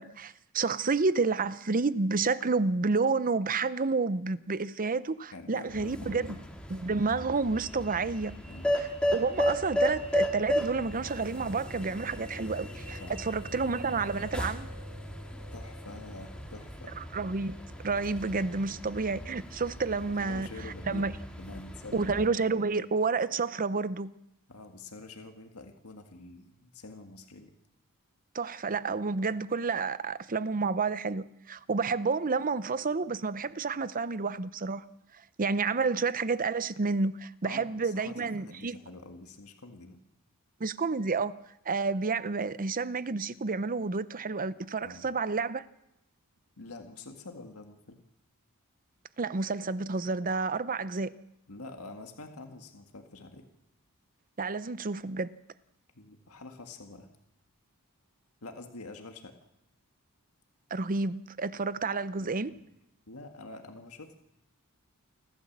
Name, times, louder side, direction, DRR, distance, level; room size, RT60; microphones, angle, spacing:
voice 1, 0.0-6.4 6.7-8.3 8.8-14.7 17.0-17.6 17.8-20.5 20.9-21.1 21.9-24.1 28.3-34.8 35.4-38.8 40.6-41.3 41.7-45.6 49.2-51.1 54.4-55.4 60.7-62.5, right 4 dB, 40° right, 0.7 m, -30 dB
voice 2, 5.3-6.3 8.5-8.8 13.0-13.5 15.5-16.9 20.2-21.0 21.4-22.1 22.7-22.8 24.5-27.5 31.7-31.8 37.4-40.0 44.8-45.1 46.6-48.0 51.5-53.5 56.0-57.1 58.4-59.3 62.2-62.6 63.1-64.2, left 2 dB, 70° left, 1.9 m, -46 dB
sound 1, 5.7-22.3, equal, 5° left, 2.0 m, -35 dB
sound 2, 8.6-20.6, left 1 dB, 70° right, 3.7 m, -48 dB
29.0 x 12.5 x 7.4 m
head